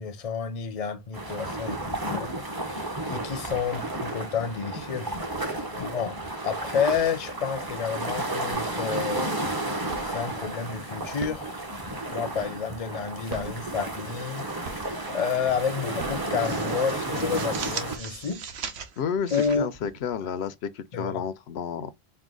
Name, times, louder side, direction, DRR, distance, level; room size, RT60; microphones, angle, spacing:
voice 1, 0.0-5.1 5.8-9.3 10.0-11.5 12.1-14.5 15.1-18.4 19.3-19.7 20.9-21.2, left 6 dB, 45° left, 0.6 m, -30 dB
sound 1, 1.1-18.0, right 2 dB, 25° right, 0.8 m, -32 dB
sound 2, 8.5-9.0 9.4-10.4 11.0-12.8 13.2-14.3 14.6-15.2 15.8-16.9 17.4-17.5 17.7-18.6, right 5 dB, 60° right, 0.9 m, -42 dB
sound 3, 14.2-15.1 15.4-15.6 16.0-20.5, right 6 dB, 85° right, 1.0 m, -40 dB
voice 2, 19.0-21.9, left 7 dB, 80° left, 0.8 m, -31 dB
4.7 x 2.2 x 3.7 m
omnidirectional pair, 1.1 m